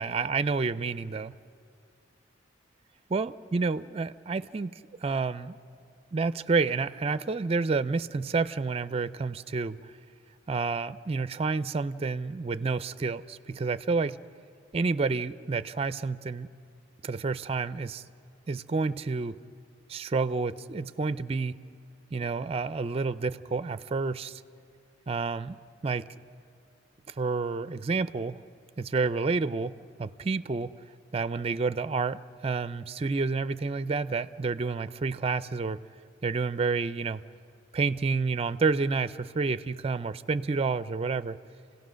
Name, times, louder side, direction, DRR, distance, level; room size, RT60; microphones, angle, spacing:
voice 1, 0.0-1.4 3.1-5.6 6.1-9.9 10.5-14.2 14.7-16.5 17.0-18.0 18.5-19.4 19.9-21.6 22.1-24.4 25.1-25.6 25.8-26.1 27.1-28.4 28.8-30.7 31.1-35.8 36.2-37.2 37.7-41.4, right 4 dB, 30° right, 14 dB, 0.4 m, -29 dB
28.0 x 17.0 x 6.3 m, 2.3 s
head